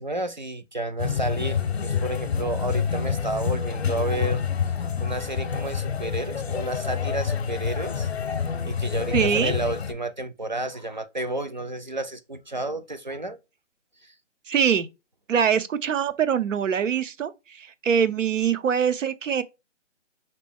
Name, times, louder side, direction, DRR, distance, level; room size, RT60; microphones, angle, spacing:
voice 1, 0.0-4.4 5.0-8.1 8.6-13.4 14.0-14.1, right 2 dB, 40° right, 0.4 m, -31 dB
sound 1, 1.0-9.9, left 7 dB, 60° left, 0.6 m, -27 dB
voice 2, 9.1-9.5 14.5-14.9 15.3-19.4, right 7 dB, 85° right, 0.7 m, -23 dB
5.1 x 2.9 x 3.4 m
hypercardioid pair, 175°, 37 cm